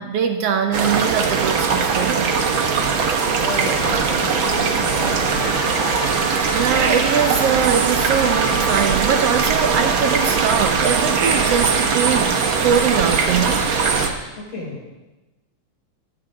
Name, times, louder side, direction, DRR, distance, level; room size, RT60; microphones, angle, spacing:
voice 1, 0.0-2.3 6.5-13.7, right 7 dB, 70° right, 6 dB, 1.5 m, -22 dB
sound 1, 0.7-14.1, right 5 dB, 55° right, 1.5 m, -20 dB
sound 2, 2.2-14.2, left 1 dB, 70° left, 3.2 m, -33 dB
voice 2, 3.3-5.9 14.4-14.9, left 2 dB, 55° left, -5 dB, 6.3 m, -31 dB
17.5 x 14.0 x 3.8 m, 1.1 s
omnidirectional pair, 3.6 m